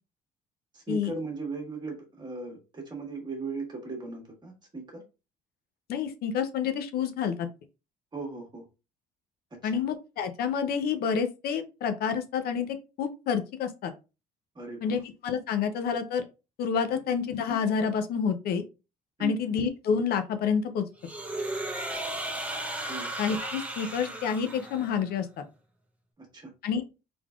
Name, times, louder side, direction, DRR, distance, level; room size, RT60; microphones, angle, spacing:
voice 1, 0.7-5.0 8.1-8.6 9.6-9.8 14.5-15.0 17.1-17.2 19.2-19.6 22.9-23.1 26.2-26.5, right 3 dB, 25° right, 2 dB, 1.5 m, -38 dB
voice 2, 5.9-7.5 9.6-13.9 14.8-16.3 16.6-18.6 19.2-20.8 23.2-25.4 26.6-26.8, left 6 dB, 65° left, 8 dB, 0.6 m, -28 dB
sound 1, 21.0-25.1, right 1 dB, 10° right, 0.8 m, -35 dB
3.7 x 3.4 x 2.3 m, 0.29 s
cardioid pair, 110°, 17 cm